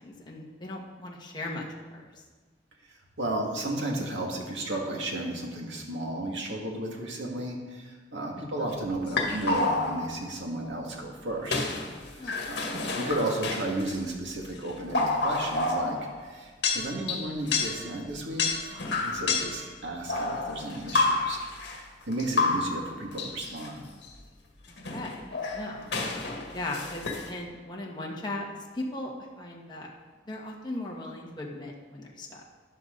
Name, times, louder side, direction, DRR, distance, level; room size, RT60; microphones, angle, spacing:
voice 1, 0.0-1.6 1.9-2.0 8.3-8.4 12.2-12.7 24.7-25.9 26.5-28.4 28.7-29.9 30.2-32.4, left 2 dB, 25° left, -2 dB, 1.7 m, -38 dB
voice 2, 2.9-11.7 12.1-18.6 19.0-23.9, right 1 dB, 90° right, 0 dB, 2.3 m, -34 dB
sound 1, 9.1-10.2 11.5-14.0 14.6-16.3 16.6-17.9 18.4-19.7 20.1-21.8 22.1-23.7 24.0-24.1 24.7-27.3, left 3 dB, 65° left, 2.0 m, -29 dB
13.0 x 11.0 x 4.0 m, 1.3 s
head